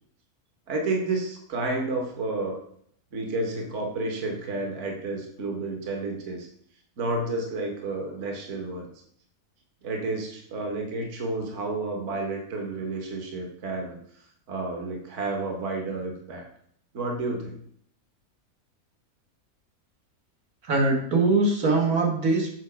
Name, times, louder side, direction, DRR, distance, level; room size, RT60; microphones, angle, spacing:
voice 1, 0.7-2.6 3.1-6.5 7.0-8.9 9.8-14.0 14.5-16.4 16.9-17.5, right 2 dB, 55° right, 2 dB, 1.6 m, -30 dB
voice 2, 20.7-22.5, right 3 dB, 75° right, 0 dB, 2.0 m, -22 dB
7.9 x 4.6 x 6.0 m, 0.67 s
omnidirectional pair, 1.5 m